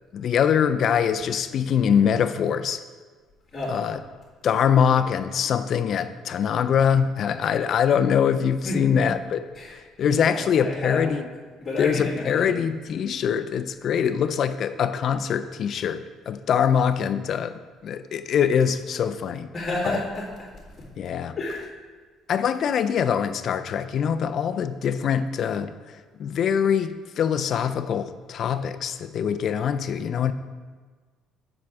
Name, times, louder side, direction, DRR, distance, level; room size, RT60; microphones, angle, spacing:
voice 1, 0.1-2.8 3.7-4.0 4.4-9.4 9.7-11.3 11.8-19.5 19.8-20.0 21.0-21.3 22.3-25.7 26.2-30.3, left 8 dB, 45° left, 11 dB, 0.4 m, -23 dB
voice 2, 3.5-3.9 8.6-8.9 9.6-9.7 10.1-11.2 11.6-12.5 19.5-20.3 21.4-21.6, left 2 dB, 20° left, -14 dB, 2.1 m, -30 dB
7.5 x 5.9 x 3.5 m, 1.4 s
cardioid pair, 150°, 0 cm